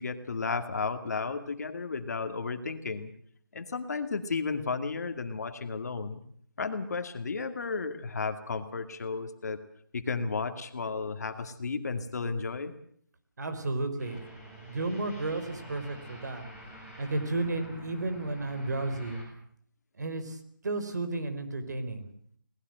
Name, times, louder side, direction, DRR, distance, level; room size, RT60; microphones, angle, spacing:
voice 1, 0.0-3.1 3.5-6.2 6.6-9.6 9.9-12.7, left 4 dB, 50° left, 8 dB, 2.3 m, -33 dB
voice 2, 13.4-16.4 17.0-19.2 19.9-22.1, right 2 dB, 55° right, 9 dB, 4.6 m, -33 dB
Dark Ambient, 14.0-19.2, equal, 5° right, 5.2 m, -48 dB
22.0 x 19.5 x 7.9 m, 0.62 s
hypercardioid pair, 170°, 11 cm